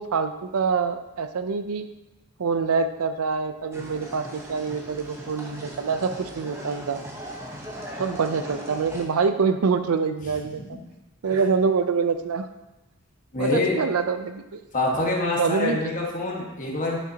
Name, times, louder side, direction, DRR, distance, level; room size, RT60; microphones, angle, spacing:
voice 1, 0.0-1.8 2.4-7.0 8.0-10.6 11.2-12.5 13.4-14.6 15.4-15.8, right 5 dB, 90° right, 9 dB, 0.5 m, -25 dB
sound 1, 3.7-9.0, equal, 10° right, 1.0 m, -39 dB
voice 2, 13.3-13.8 14.7-17.0, left 2 dB, 35° left, -2 dB, 1.4 m, -25 dB
9.0 x 6.3 x 2.8 m, 1.0 s
head